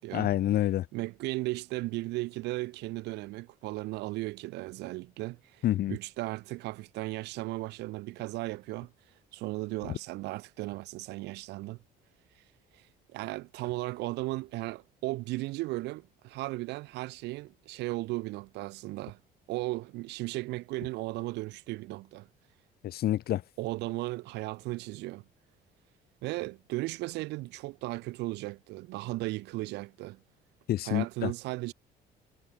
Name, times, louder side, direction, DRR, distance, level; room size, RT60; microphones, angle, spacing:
voice 1, 0.1-0.8 5.6-6.0 22.8-23.4 30.7-31.3, left 13 dB, 65° left, 4.0 m, -27 dB
voice 2, 0.9-8.9 9.3-11.8 13.1-19.2 19.5-22.3 23.6-25.2 26.2-30.2 30.8-31.7, right 20 dB, 90° right, 7.4 m, -36 dB
cardioid pair, 110°, 17 cm